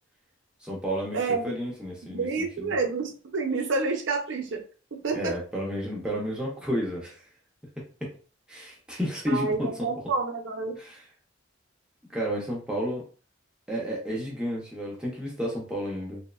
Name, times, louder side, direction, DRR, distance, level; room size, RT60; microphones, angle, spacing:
voice 1, 0.6-2.7 5.1-7.2 8.0-8.2 8.5-9.9 10.8-11.0 12.1-13.0 13.7-16.2, equal, 5° right, -3 dB, 0.5 m, -31 dB
voice 2, 1.1-1.6 2.0-4.6 4.9-5.3 9.3-10.7, right 4 dB, 65° right, 3 dB, 0.5 m, -29 dB
2.9 x 2.0 x 2.2 m, 0.38 s
head